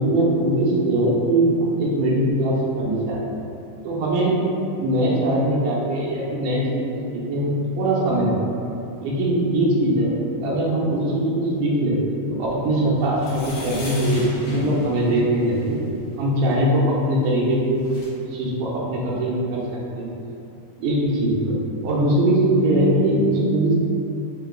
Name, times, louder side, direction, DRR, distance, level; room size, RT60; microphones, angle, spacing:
voice 1, 0.0-3.2 3.8-4.3 4.8-8.3 9.0-12.0 12.3-15.8 16.2-17.8 18.2-20.1 20.8-21.6 21.8-23.8, right 1 dB, 85° right, -4 dB, 2.1 m, -21 dB
sound 1, 13.1-15.7 17.4-17.5 17.7-18.1, left 1 dB, 65° left, 1.8 m, -37 dB
5.7 x 2.9 x 2.2 m, 2.7 s
omnidirectional pair, 3.8 m